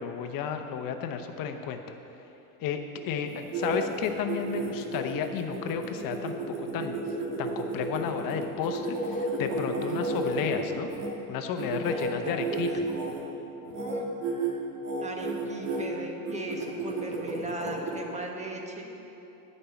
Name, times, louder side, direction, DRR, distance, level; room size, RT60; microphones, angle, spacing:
voice 1, 0.0-1.8 2.6-7.0 7.4-10.9 11.3-12.9, left 7 dB, 45° left, 6 dB, 1.0 m, -32 dB
sound 1, 3.3-11.1 11.6-13.2 13.7-14.0 14.2-14.5 14.8-15.8 16.2-18.0, right 2 dB, 80° right, 2.1 m, -32 dB
voice 2, 11.9-12.7 13.7-14.0 15.0-19.0, right 1 dB, 15° right, 1 dB, 1.4 m, -38 dB
9.8 x 5.6 x 7.8 m, 3.0 s
supercardioid pair, 105°, 46 cm